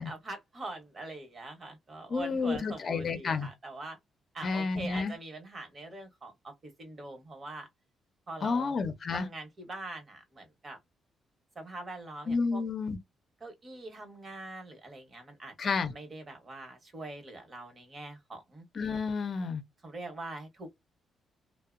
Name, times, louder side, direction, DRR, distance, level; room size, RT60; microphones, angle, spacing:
voice 1, 0.0-4.0 4.3-7.7 8.3-8.7 9.1-10.8 11.5-12.6 13.4-15.5 15.9-18.6 19.8-20.7, right 2 dB, 40° right, 1.0 m, -43 dB
voice 2, 2.1-3.5 4.4-5.1 8.4-9.3 12.3-13.0 15.6-15.9 18.7-19.6, left 4 dB, 50° left, 0.6 m, -30 dB
2.7 x 2.0 x 2.4 m
cardioid pair, 90°, 0 cm